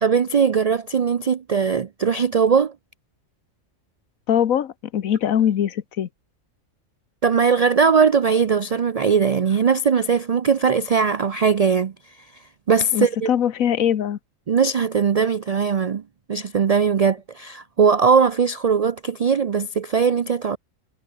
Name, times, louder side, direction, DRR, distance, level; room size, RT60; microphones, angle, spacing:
voice 1, 0.0-2.7 7.2-11.9 12.7-13.3 14.5-16.0 16.3-20.6, right 6 dB, 75° right, 0.3 m, -19 dB
voice 2, 4.3-6.1 12.9-14.2, left 9 dB, 85° left, 1.4 m, -22 dB
omnidirectional pair, 1.4 m